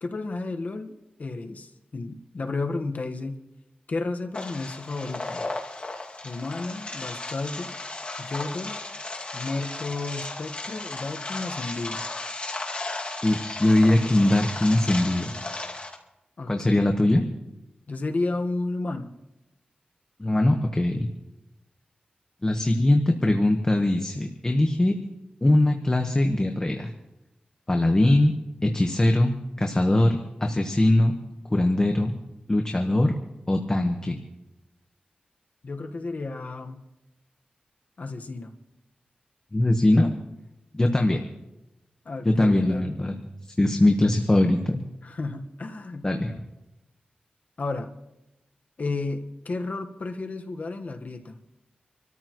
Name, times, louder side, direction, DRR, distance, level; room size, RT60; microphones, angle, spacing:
voice 1, 0.0-3.4 3.9-5.5 6.2-7.8 8.2-8.8 9.3-12.0 16.4-16.9 17.9-19.1 35.6-36.8 38.0-38.5 42.0-43.0 45.0-46.0 47.6-47.9 48.8-51.4, left 3 dB, 55° left, 4 dB, 1.3 m, -32 dB
sound 1, 4.3-15.9, left 2 dB, 40° left, 2.2 m, -35 dB
voice 2, 13.2-15.3 16.5-17.2 20.2-21.1 22.4-24.9 25.4-26.9 27.7-28.3 28.6-31.1 31.5-32.1 32.5-33.1 33.5-34.2 39.5-40.2 40.7-41.2 42.2-43.2 43.6-44.8 46.0-46.3, left 1 dB, 20° left, 3 dB, 1.2 m, -21 dB
27.0 x 13.5 x 3.1 m, 0.95 s
wide cardioid pair, 100°, 3 cm